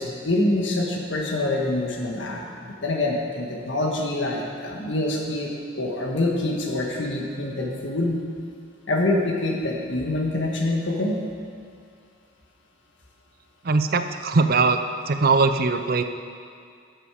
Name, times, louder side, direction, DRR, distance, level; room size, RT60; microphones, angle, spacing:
voice 1, 0.0-5.5 5.7-8.2 8.9-11.2, left 2 dB, 70° left, 0 dB, 1.7 m, -25 dB
voice 2, 13.6-14.8 15.1-16.0, right 4 dB, 50° right, 9 dB, 0.6 m, -20 dB
12.5 x 8.1 x 5.0 m, 2.3 s
head